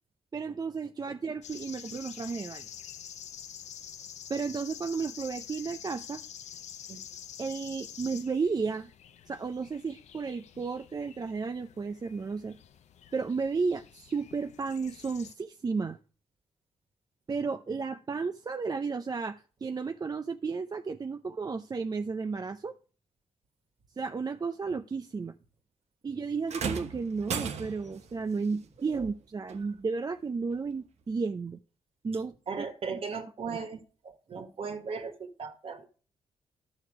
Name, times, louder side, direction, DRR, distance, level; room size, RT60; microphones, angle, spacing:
voice 1, 0.3-2.7 4.3-6.2 7.4-8.9 9.3-12.5 13.1-16.0 17.3-22.7 24.0-25.3 26.0-31.6 32.0-32.7 32.9-33.0 33.5-33.6, right 4 dB, 35° right, 0.6 m, -33 dB
sound 1, 1.4-15.3, left 9 dB, 75° left, 0.7 m, -47 dB
sound 2, 26.5-28.0 29.5-29.6 30.5-30.6, right 6 dB, 70° right, 1.1 m, -35 dB
voice 2, 32.5-35.9, right 5 dB, 55° right, 1.8 m, -37 dB
11.5 x 6.5 x 4.8 m
cardioid pair, 70°, 12 cm